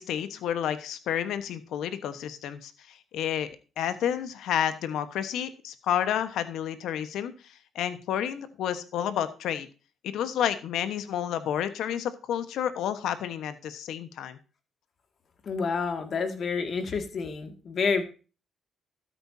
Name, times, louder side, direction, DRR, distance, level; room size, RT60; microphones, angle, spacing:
voice 1, 0.0-3.5 3.8-9.7 10.0-14.4, left 9 dB, 80° left, 12 dB, 1.2 m, -30 dB
voice 2, 15.5-18.0, left 5 dB, 50° left, 7 dB, 2.1 m, -29 dB
13.0 x 9.0 x 2.8 m, 0.34 s
cardioid pair, 90°, 0 cm